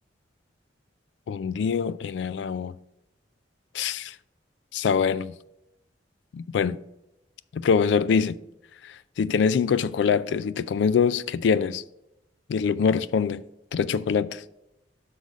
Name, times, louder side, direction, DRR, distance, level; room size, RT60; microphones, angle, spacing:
voice 1, 1.3-2.7 3.7-4.1 4.7-5.3 6.3-6.8 7.5-8.4 9.2-11.8 12.5-13.4 13.7-14.4, left 6 dB, 80° left, 0.3 m, -24 dB
6.3 x 3.9 x 5.0 m
head